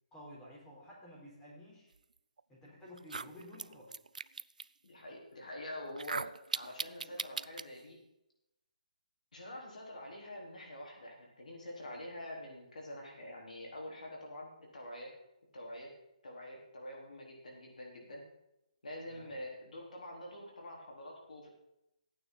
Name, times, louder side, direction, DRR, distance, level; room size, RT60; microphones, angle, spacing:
voice 1, 0.1-1.9 2.5-4.0 19.1-19.3, left 1 dB, 10° left, -4 dB, 3.8 m, -52 dB
sound 1, 2.4-2.5 3.0-4.7 5.9-7.7, right 4 dB, 90° right, 0.4 m, -39 dB
voice 2, 4.8-8.0 9.3-15.1 15.5-15.9 16.2-18.2 18.8-21.5, left 1 dB, 75° left, -1 dB, 3.9 m, -46 dB
14.5 x 9.2 x 4.0 m, 0.86 s
hypercardioid pair, 155°, 4 cm